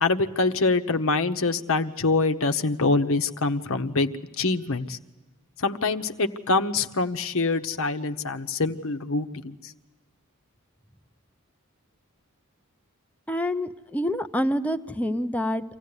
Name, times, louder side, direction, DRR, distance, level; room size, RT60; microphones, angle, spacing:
voice 1, 0.0-5.0 5.6-9.7, left 3 dB, 65° left, 7 dB, 1.1 m, -25 dB
voice 2, 13.3-15.8, equal, 5° left, 7 dB, 0.8 m, -27 dB
25.0 x 16.5 x 9.8 m, 1.2 s
head